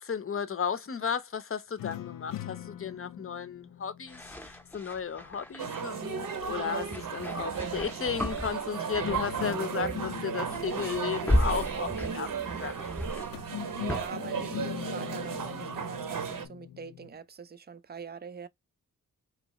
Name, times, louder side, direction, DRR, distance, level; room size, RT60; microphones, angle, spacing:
voice 1, 0.0-4.2 4.7-13.1, left 7 dB, 40° left, 0.6 m, -34 dB
sound 1, 1.8-5.2 9.0-12.4 13.3-17.2, left 12 dB, 85° left, 0.5 m, -42 dB
sound 2, 4.1-5.9 6.8-9.5 9.8-10.2 10.4-14.1, equal, 5° left, 0.7 m, -34 dB
sound 3, 5.6-16.5, right 7 dB, 75° right, 0.9 m, -35 dB
voice 2, 13.8-18.5, right 6 dB, 30° right, 0.4 m, -44 dB
3.1 x 2.8 x 4.0 m
wide cardioid pair, 125°, 33 cm